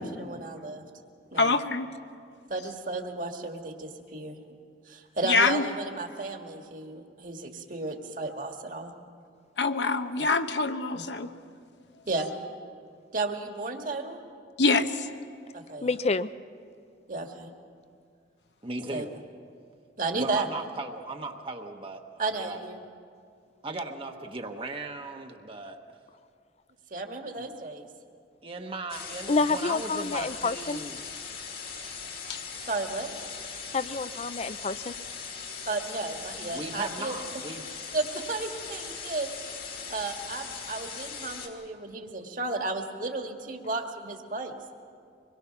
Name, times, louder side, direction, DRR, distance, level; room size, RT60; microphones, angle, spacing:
voice 1, 0.2-0.8 1.3-1.6 2.5-4.4 4.9-8.9 10.2-10.3 10.9-11.0 12.1-12.3 13.1-14.2 15.5-15.9 17.1-17.5 18.9-19.0 20.0-20.5 22.2-22.8 26.9-27.9 32.6-33.1 35.7-37.2 37.9-39.3 39.9-44.5, right 3 dB, 50° right, 3 dB, 1.8 m, -33 dB
voice 2, 1.4-1.9 5.3-5.6 9.6-11.3 14.6-15.1 32.3-32.4, left 3 dB, 70° left, 8 dB, 1.0 m, -25 dB
voice 3, 15.8-16.3 29.3-30.8 33.7-34.9, left 3 dB, 35° left, 14 dB, 0.5 m, -28 dB
voice 4, 18.6-19.1 20.1-22.6 23.6-25.8 27.4-27.5 28.4-31.0 36.4-37.7, right 2 dB, 30° right, 3 dB, 1.1 m, -37 dB
sound 1, 28.9-41.5, left 5 dB, 55° left, 2.3 m, -40 dB
25.0 x 21.5 x 5.9 m, 2.3 s
head